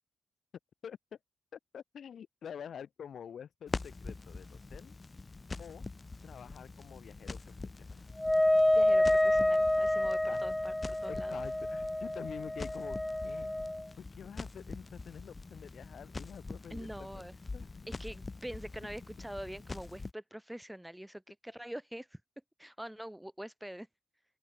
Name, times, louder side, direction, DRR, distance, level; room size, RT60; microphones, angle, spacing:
voice 1, 1.5-4.9 5.6-5.8 6.2-8.0 10.3-10.5 11.0-13.5 14.0-17.2 17.5-17.9, left 8 dB, 70° left, 7.5 m, -47 dB
Crackle, 3.7-20.1, left 3 dB, 30° left, 3.7 m, -45 dB
Wind instrument woodwind instrument, 8.2-13.8, left 1 dB, 10° left, 0.7 m, -28 dB
voice 2, 8.7-10.7 11.0-11.4 16.7-17.4 18.0-22.2 22.6-23.9, right 1 dB, 5° right, 1.7 m, -44 dB
open air
cardioid pair, 70°, 0 cm